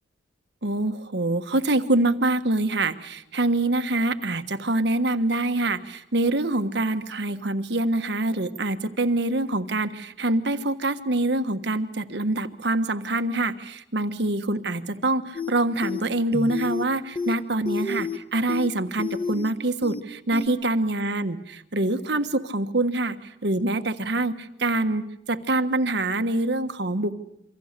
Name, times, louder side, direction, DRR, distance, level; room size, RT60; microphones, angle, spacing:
voice 1, 0.6-25.0 25.3-27.2, right 2 dB, 60° right, 9 dB, 1.4 m, -25 dB
sound 1, 15.3-15.5 15.8-16.0 16.3-16.8 17.2-17.3 17.7-18.2 18.5-18.7 19.0-19.5 19.8-20.0 20.3-20.5, left 4 dB, 30° left, 1.3 m, -30 dB
27.5 x 24.5 x 6.7 m, 0.77 s
head